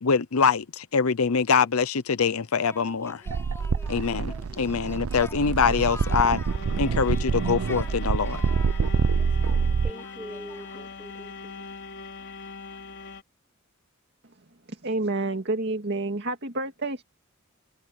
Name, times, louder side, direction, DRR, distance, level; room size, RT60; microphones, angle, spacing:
voice 1, 0.0-3.2 3.9-6.4 6.8-8.4, left 5 dB, 85° left, 0.7 m, -24 dB
Singing, 2.7-11.0, left 2 dB, 15° left, 4.5 m, -46 dB
sound 1, 3.3-9.9, right 5 dB, 85° right, 0.5 m, -26 dB
sound 2, 5.6-13.2, left 4 dB, 55° left, 4.5 m, -42 dB
voice 2, 9.8-11.7, equal, 5° right, 5.0 m, -43 dB
voice 3, 14.7-17.0, right 2 dB, 55° right, 2.2 m, -29 dB
head